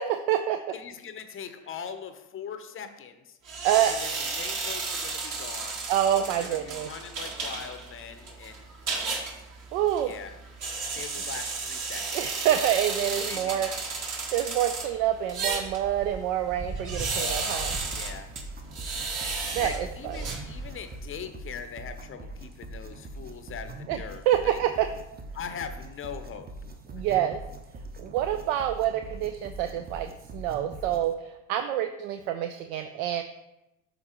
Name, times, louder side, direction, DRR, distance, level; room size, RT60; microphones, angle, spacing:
voice 1, 0.0-0.6 3.6-3.9 5.9-6.9 9.7-10.1 12.1-13.7 14.3-17.7 19.5-20.4 23.9-24.9 26.9-27.4 28.0-33.2, right 11 dB, 60° right, 8 dB, 0.6 m, -27 dB
voice 2, 0.7-3.4 3.8-5.8 6.3-8.7 10.0-10.3 11.0-12.2 13.2-13.8 17.1-18.3 19.6-24.6 25.3-26.5, left 7 dB, 25° left, 8 dB, 0.7 m, -41 dB
sound 1, 3.5-21.0, right 4 dB, 40° right, 1.5 m, -34 dB
sound 2, 17.5-31.1, right 2 dB, 20° right, 0.8 m, -42 dB
12.0 x 4.0 x 3.0 m, 0.93 s
hypercardioid pair, 75°, 46 cm